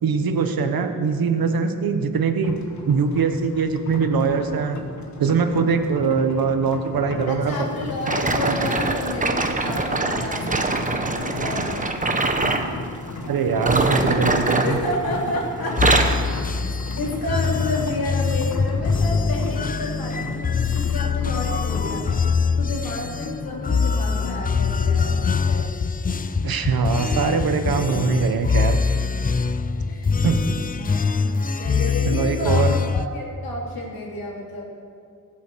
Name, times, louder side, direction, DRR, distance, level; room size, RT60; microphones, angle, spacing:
voice 1, 0.0-2.5 2.8-4.8 5.2-7.5 8.0-8.1 8.5-8.6 13.2-14.8 26.4-28.8 30.2-30.4 32.1-32.7, right 5 dB, 80° right, 7 dB, 1.3 m, -22 dB
sound 1, 2.4-22.3, left 3 dB, 50° left, 1.7 m, -35 dB
voice 2, 7.3-11.9 12.3-12.4 13.7-14.0 14.6-15.8 17.0-22.1 22.6-25.6 29.9-30.0 30.7-34.6, left 1 dB, 80° left, -2 dB, 3.4 m, -30 dB
sound 2, 8.0-12.7 13.5-15.3 15.6-16.3 16.9-17.1 17.7-17.8, right 3 dB, 20° right, 1.1 m, -23 dB
sound 3, 15.8-33.1, left 5 dB, 25° left, 0.4 m, -23 dB
20.0 x 8.4 x 6.4 m, 2.4 s
wide cardioid pair, 115°, 35 cm